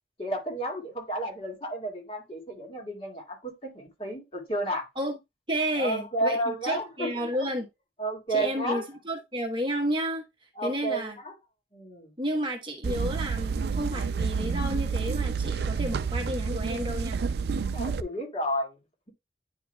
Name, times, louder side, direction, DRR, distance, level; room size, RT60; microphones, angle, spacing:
voice 1, 0.2-4.8 5.8-7.3 8.0-8.8 10.6-11.3 11.7-12.1 17.7-18.8, right 1 dB, 30° left, 2.0 m, -32 dB
voice 2, 5.5-7.7 8.3-10.2 10.6-11.2 12.2-17.2, equal, 30° right, 1.0 m, -31 dB
sound 1, 12.8-18.0, right 5 dB, 65° right, 0.4 m, -29 dB
9.7 x 4.8 x 2.2 m
head